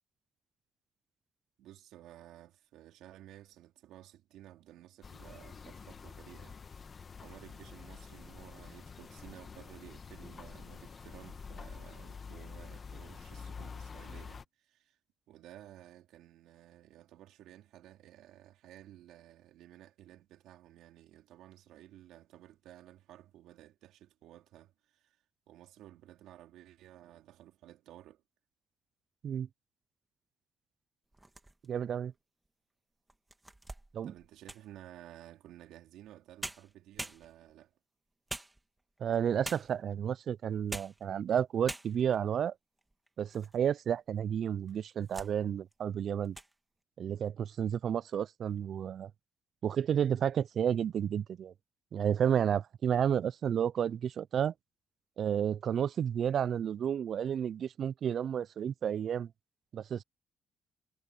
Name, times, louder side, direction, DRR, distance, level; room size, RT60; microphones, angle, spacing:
voice 1, 1.6-6.9 7.2-15.0 15.3-25.2 25.5-28.2 34.0-37.7, right 13 dB, 90° right, 3.2 m, -54 dB
sound 1, 5.0-14.4, left 5 dB, 40° left, 1.2 m, -48 dB
sound 2, 31.1-31.9 32.5-32.6 33.1-34.8 36.1-36.2 36.4-37.6 38.3-39.0 39.4-39.9 40.5-41.1 41.3-41.4 41.7-42.2 42.8-43.6 43.9-44.0 44.7-45.4 45.7-45.9 46.2-46.5, right 2 dB, 15° right, 2.2 m, -44 dB
voice 2, 31.7-32.1 33.9-34.1 39.0-42.5 43.2-46.4 47.0-49.1 49.6-51.5 51.9-54.5 55.2-59.3 59.7-60.0, right 8 dB, 60° right, 0.3 m, -31 dB
cardioid pair, 90°, 0 cm